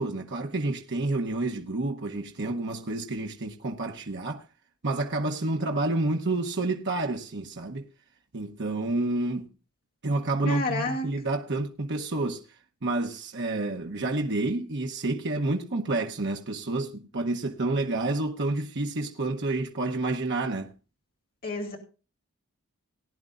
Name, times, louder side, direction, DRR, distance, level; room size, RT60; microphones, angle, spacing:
voice 1, 0.0-4.4 4.8-7.9 8.3-9.5 10.0-12.4 12.8-20.7, right 2 dB, 50° right, 1.0 m, -29 dB
voice 2, 10.5-11.1 21.4-21.8, left 2 dB, 40° left, 2.7 m, -29 dB
18.5 x 10.0 x 2.5 m
head